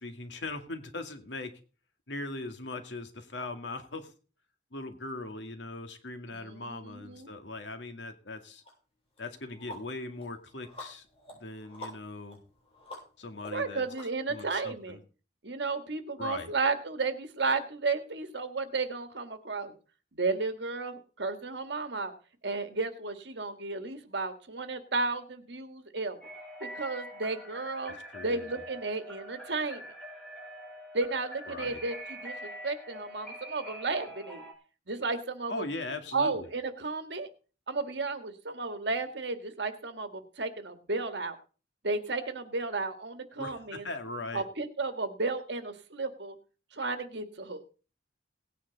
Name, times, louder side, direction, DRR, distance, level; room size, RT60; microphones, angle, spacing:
voice 1, 0.0-1.5 2.1-4.1 4.7-8.6 9.2-11.1 11.4-12.4 13.2-13.9 14.3-15.0 16.2-16.5 28.1-28.5 31.5-31.8 35.5-36.5 43.4-44.4, left 2 dB, 80° left, 6 dB, 2.1 m, -40 dB
voice 2, 6.3-7.3 13.5-15.0 15.4-19.7 20.1-22.1 22.4-26.2 26.6-27.9 28.2-29.8 30.9-32.3 32.6-34.4 34.9-35.6 36.1-37.3 37.7-41.4 41.8-43.8 44.3-46.4 46.7-47.6, right 3 dB, 65° right, 8 dB, 1.7 m, -33 dB
sound 1, 8.6-8.7 9.2-14.5, left 1 dB, 35° left, 7.2 m, -48 dB
sound 2, 26.2-34.5, equal, 5° left, 5.8 m, -44 dB
18.0 x 9.3 x 4.0 m, 0.37 s
head